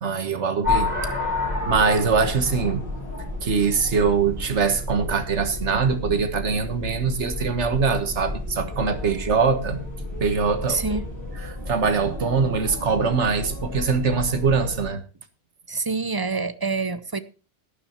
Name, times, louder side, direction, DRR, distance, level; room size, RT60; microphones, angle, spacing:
voice 1, 0.0-0.9 1.7-2.8 3.4-9.8 10.2-10.8 11.7-15.0, right 5 dB, 80° right, 1.7 m, -23 dB
sound 1, 0.6-14.9, left 2 dB, 15° left, 7.9 m, -31 dB
voice 2, 10.7-11.1 15.7-17.2, right 4 dB, 25° right, 0.6 m, -26 dB
12.0 x 10.5 x 4.4 m
omnidirectional pair, 1.2 m